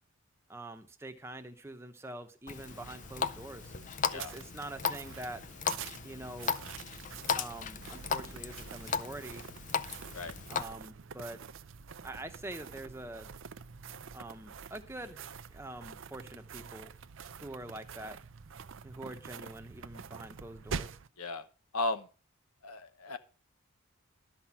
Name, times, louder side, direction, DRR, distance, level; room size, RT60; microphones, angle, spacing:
voice 1, 0.5-3.7 4.1-5.4 6.0-6.5 7.3-9.4 10.5-11.4 12.0-13.3 14.1-15.2 15.5-16.9 17.4-18.2 18.8-20.9, right 1 dB, 10° right, 6 dB, 0.9 m, -45 dB
Water tap faucet, 2.5-10.6, left 6 dB, 35° left, 0.4 m, -37 dB
sound 1, 2.7-21.1, right 6 dB, 60° right, 0.5 m, -46 dB
voice 2, 21.7-22.1 22.6-23.2, left 2 dB, 90° left, 10 dB, 1.1 m, -35 dB
12.0 x 6.0 x 5.8 m, 0.36 s
head